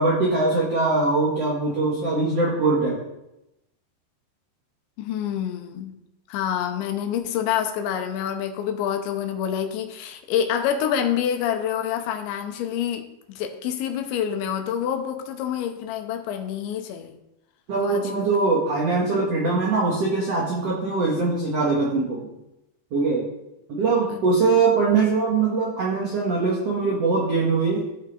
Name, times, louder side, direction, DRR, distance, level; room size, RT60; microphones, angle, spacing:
voice 1, 0.0-3.0 17.7-22.3 22.9-23.3 23.7-27.9, right 3 dB, 80° right, -3 dB, 1.4 m, -22 dB
voice 2, 5.0-5.9 6.3-17.2 17.8-18.3 24.1-24.2, left 9 dB, 85° left, 5 dB, 3.2 m, -27 dB
14.5 x 5.5 x 4.0 m, 0.91 s
omnidirectional pair, 5.2 m